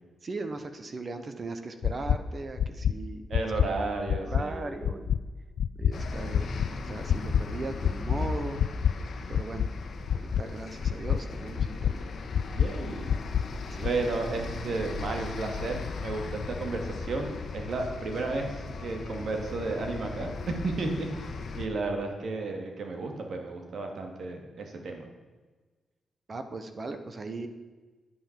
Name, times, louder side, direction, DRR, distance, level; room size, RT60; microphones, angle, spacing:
voice 1, 0.2-3.3 3.6-3.9 4.2-5.1 5.8-8.6 9.3-9.7 10.1-12.1 13.7-13.9 26.3-27.5, right 3 dB, 35° right, 8 dB, 1.0 m, -38 dB
sound 1, 1.8-2.2 2.6-2.9 3.3-3.7 4.1-4.4 4.8-5.2 5.6-5.9 6.3-6.7 7.1-7.4 7.8-8.2 8.6-8.9 9.3-9.7 10.1-10.4 10.8-11.2 11.6-11.9 12.3-12.7 13.1-13.4 13.8-13.9, left 9 dB, 75° left, 0.4 m, -25 dB
voice 2, 3.3-4.7 12.5-13.1 13.8-25.0, right 3 dB, 60° right, 3 dB, 2.3 m, -33 dB
sound 2, 5.9-21.7, left 4 dB, 60° left, 1.2 m, -38 dB
9.7 x 8.5 x 7.5 m, 1.3 s
cardioid pair, 120°, 0 cm